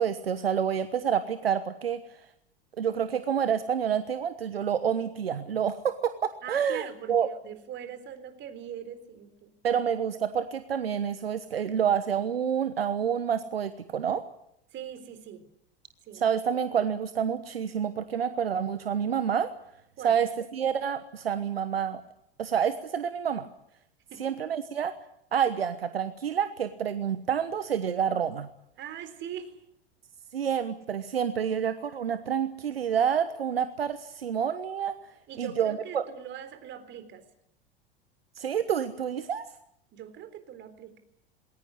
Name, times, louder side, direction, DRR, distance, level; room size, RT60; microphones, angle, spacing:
voice 1, 0.0-2.0 2.8-7.3 9.6-14.2 16.1-19.5 20.0-22.0 22.4-23.5 24.2-25.0 25.3-28.5 30.3-34.9 35.4-36.0 38.4-39.4, right 8 dB, 80° right, 12 dB, 1.3 m, -28 dB
voice 2, 6.4-9.8 14.7-15.5 16.0-16.2 20.0-20.2 24.1-24.4 28.8-29.6 35.3-37.2 39.9-41.0, right 9 dB, 40° right, 10 dB, 3.8 m, -42 dB
20.5 x 18.5 x 9.8 m, 0.77 s
figure-of-eight pair, 85°, 30 cm